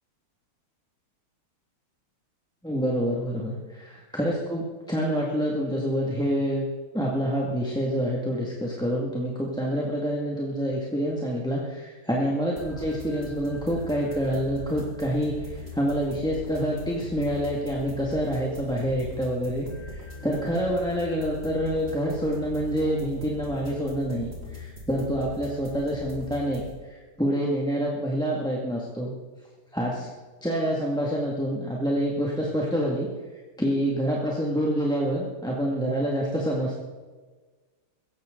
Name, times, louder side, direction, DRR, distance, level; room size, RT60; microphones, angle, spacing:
voice 1, 2.6-6.6 6.9-29.1 29.7-30.1 30.4-33.1 33.3-36.8, equal, ahead, -3 dB, 1.7 m, -27 dB
sound 1, 12.6-26.7, left 1 dB, 30° right, 3.6 m, -40 dB
16.5 x 15.0 x 3.9 m, 1.3 s
omnidirectional pair, 2.4 m